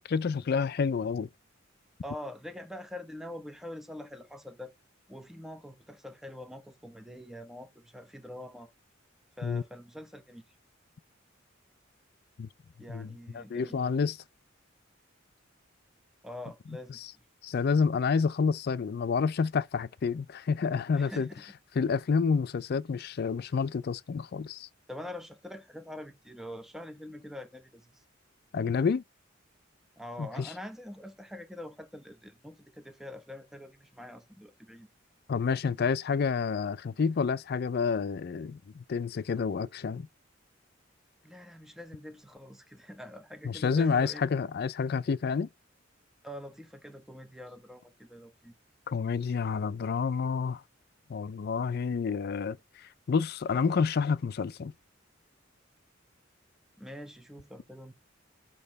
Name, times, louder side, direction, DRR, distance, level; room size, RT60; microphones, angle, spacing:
voice 1, 0.1-1.3 9.4-9.6 12.4-12.5 12.9-13.1 13.3-14.2 17.4-21.3 21.8-24.7 28.5-29.0 30.2-30.5 35.3-40.1 43.4-45.5 48.9-50.6 51.1-52.6 53.1-54.7, left 5 dB, 55° left, 0.4 m, -29 dB
voice 2, 2.0-4.7 5.1-8.7 9.4-10.4 12.8-13.8 16.2-17.2 20.9-21.4 24.9-28.0 30.0-34.9 41.2-44.2 46.2-48.5 56.8-57.9, left 1 dB, ahead, 0.8 m, -44 dB
6.6 x 3.0 x 5.2 m
head